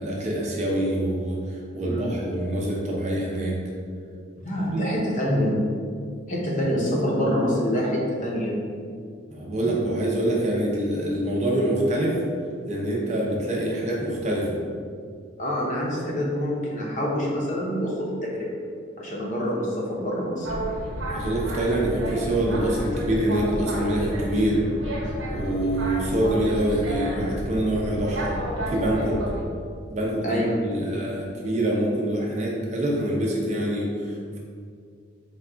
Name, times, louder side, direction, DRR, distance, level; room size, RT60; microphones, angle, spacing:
voice 1, 0.0-3.6 4.7-4.9 9.3-12.2 12.7-14.6 21.1-24.6 25.3-28.4 28.7-29.2 29.9-34.4, right 1 dB, 35° right, -3 dB, 0.6 m, -25 dB
voice 2, 4.4-5.6 6.3-8.6 15.4-18.5 19.0-20.5 30.2-30.6, equal, 35° left, -3 dB, 0.6 m, -26 dB
Boat Water vehicle, 20.4-29.4, equal, 70° right, 0.9 m, -31 dB
4.5 x 2.3 x 3.7 m, 2.2 s
head